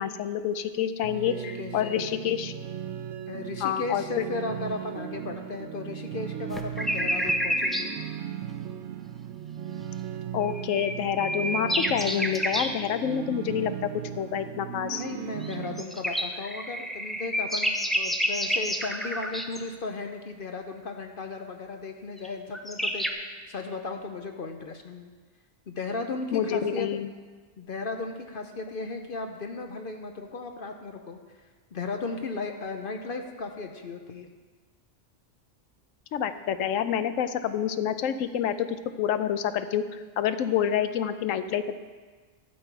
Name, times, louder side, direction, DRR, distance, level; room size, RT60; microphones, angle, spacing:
voice 1, 0.0-2.5 3.6-4.2 10.3-13.9 14.2-15.0 26.3-27.1 36.1-41.8, left 9 dB, 85° left, 11 dB, 1.0 m, -28 dB
sound 1, 1.0-15.8, right 9 dB, 70° right, 0.8 m, -37 dB
voice 2, 1.3-2.1 3.3-7.9 14.9-23.0 23.5-25.1 25.7-26.9 27.6-31.2 31.7-34.3, left 3 dB, 50° left, 5 dB, 0.8 m, -35 dB
sound 2, 6.5-7.9 10.4-12.7 15.4-19.6 22.2-22.3 22.5-23.1, equal, ahead, 0.3 m, -29 dB
12.5 x 7.5 x 4.6 m, 1.4 s
omnidirectional pair, 1.3 m